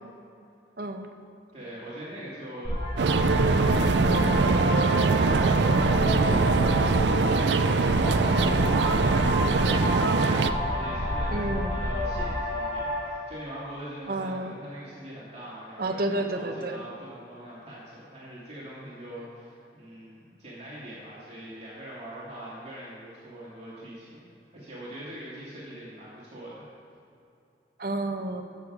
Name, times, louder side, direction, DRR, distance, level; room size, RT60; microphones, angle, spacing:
voice 1, 1.5-2.7 3.2-7.0 7.3-24.2 24.5-26.7, right 1 dB, 35° right, -8 dB, 2.4 m, -43 dB
sound 1, 2.6-13.1, equal, 30° left, 2.3 m, -29 dB
sound 2, 3.0-10.5, right 4 dB, 75° right, 0.5 m, -23 dB
voice 2, 11.3-11.8 14.1-14.5 15.8-16.8 27.8-28.4, right 2 dB, 55° right, 5 dB, 0.9 m, -30 dB
14.5 x 6.7 x 4.8 m, 2.7 s
head